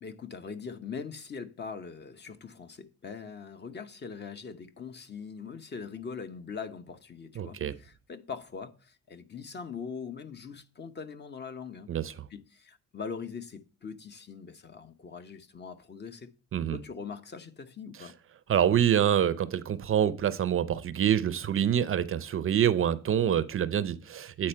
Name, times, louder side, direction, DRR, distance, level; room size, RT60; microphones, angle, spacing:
voice 1, 0.0-11.9 12.3-16.3 16.7-18.1, left 5 dB, 35° left, 0.8 m, -42 dB
voice 2, 7.4-7.7 11.9-12.1 16.5-16.8 18.5-24.5, right 9 dB, 45° right, 0.5 m, -26 dB
8.6 x 4.3 x 4.4 m
cardioid pair, 90°, 30 cm